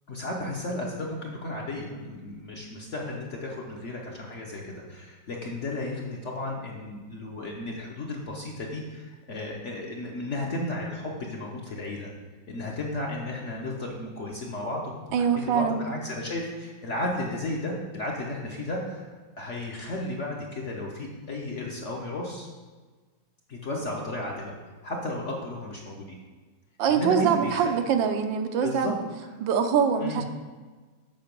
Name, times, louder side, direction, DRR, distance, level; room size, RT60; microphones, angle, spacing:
voice 1, 0.1-12.1 12.5-19.1 19.4-22.5 23.5-24.5 24.8-26.2 26.9-27.7 28.6-28.9 30.0-30.2, left 1 dB, 55° left, -1 dB, 0.9 m, -34 dB
voice 2, 15.1-15.8 26.8-29.0 29.4-30.3, right 7 dB, 80° right, 7 dB, 1.4 m, -24 dB
7.7 x 5.2 x 5.2 m, 1.4 s
omnidirectional pair, 2.1 m